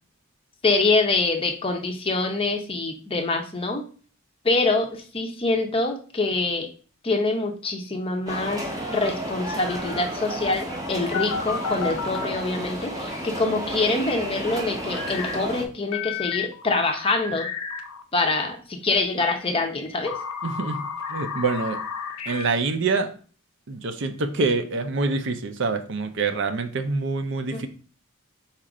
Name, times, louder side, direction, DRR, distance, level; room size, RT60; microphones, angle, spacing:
voice 1, 0.6-3.9 4.4-6.7 7.0-17.5 18.1-20.1 27.5-27.6, left 3 dB, 25° left, 4 dB, 0.6 m, -25 dB
sound 1, 8.3-15.6, equal, 15° right, 0.6 m, -32 dB
sound 2, 11.1-12.3 14.9-15.4 15.9-18.0 18.9-22.5, left 6 dB, 80° left, 0.6 m, -32 dB
voice 2, 20.4-20.8 21.1-21.8 22.3-23.1 23.7-27.7, right 3 dB, 55° right, 8 dB, 0.5 m, -26 dB
4.3 x 2.5 x 4.8 m, 0.40 s
head